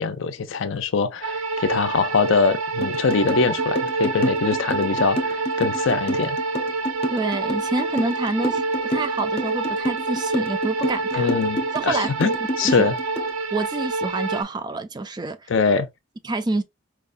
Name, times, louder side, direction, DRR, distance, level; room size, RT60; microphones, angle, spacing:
voice 1, 0.0-6.4 11.1-13.0 15.5-15.9, left 5 dB, 70° left, 0.5 m, -23 dB
sound 1, 1.2-14.4, right 3 dB, 75° right, 0.6 m, -27 dB
sound 2, 2.8-13.3, equal, 30° left, 0.7 m, -28 dB
voice 2, 7.1-11.4 11.7-12.3 12.6-12.9 13.5-15.5 16.2-16.6, right 2 dB, 20° right, 0.3 m, -27 dB
4.6 x 2.1 x 2.4 m
head